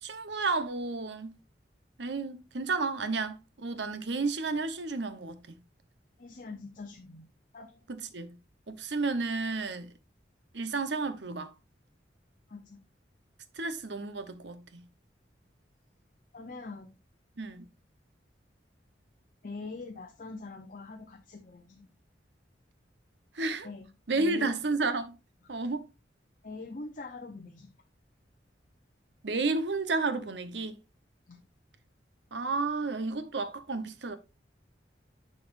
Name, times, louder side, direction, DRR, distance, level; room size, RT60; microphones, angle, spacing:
voice 1, 0.0-1.4 2.0-5.6 7.9-8.3 8.7-9.9 10.5-11.5 13.5-14.8 17.4-17.7 23.3-23.7 24.1-25.1 25.5-25.9 29.2-30.8 32.3-34.2, right 3 dB, 75° right, 0.9 m, -32 dB
voice 2, 6.2-7.3 7.5-7.8 12.5-12.8 16.3-16.9 19.4-21.9 23.6-23.9 24.2-24.6 26.4-27.7 31.3-31.4, left 3 dB, 45° left, 0.7 m, -43 dB
11.0 x 4.2 x 2.6 m
head